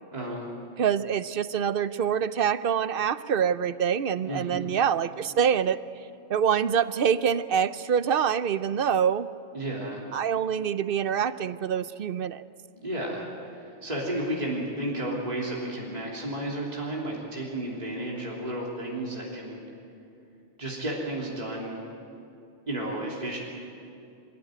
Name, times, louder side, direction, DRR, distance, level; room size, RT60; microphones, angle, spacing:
voice 1, 0.1-0.5 4.2-4.6 9.5-10.0 12.7-13.2 13.5-19.6 20.6-21.8 22.7-23.4, right 1 dB, 35° right, -4 dB, 3.5 m, -32 dB
voice 2, 0.8-5.8 6.3-9.3 10.1-12.4, right 8 dB, 55° right, 14 dB, 0.8 m, -25 dB
27.0 x 15.0 x 9.4 m, 2.6 s
omnidirectional pair, 1.2 m